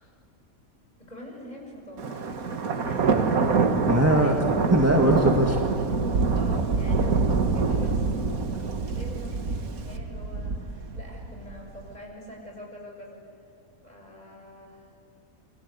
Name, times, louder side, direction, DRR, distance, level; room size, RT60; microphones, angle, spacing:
voice 1, 1.0-2.4 2.8-4.4 6.3-13.2 13.8-14.9, left 1 dB, 30° left, -1 dB, 7.4 m, -44 dB
Thunder, 2.0-11.8, right 4 dB, 85° right, 2.0 m, -25 dB
voice 2, 3.9-5.7, right 1 dB, 10° right, 1 dB, 1.7 m, -21 dB
28.5 x 24.5 x 8.3 m, 2.5 s
omnidirectional pair, 1.5 m